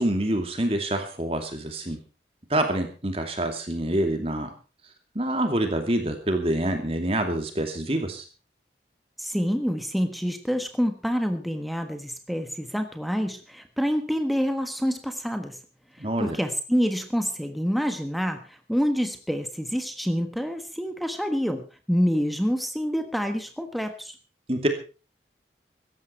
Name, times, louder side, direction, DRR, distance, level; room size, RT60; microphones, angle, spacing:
voice 1, 0.0-2.0 2.5-4.5 5.1-8.2 16.0-16.4 24.5-24.7, right 1 dB, 35° right, 5 dB, 2.6 m, -26 dB
voice 2, 9.2-15.6 15.9-24.2, equal, ahead, 6 dB, 1.3 m, -27 dB
17.5 x 14.0 x 4.5 m, 0.34 s
head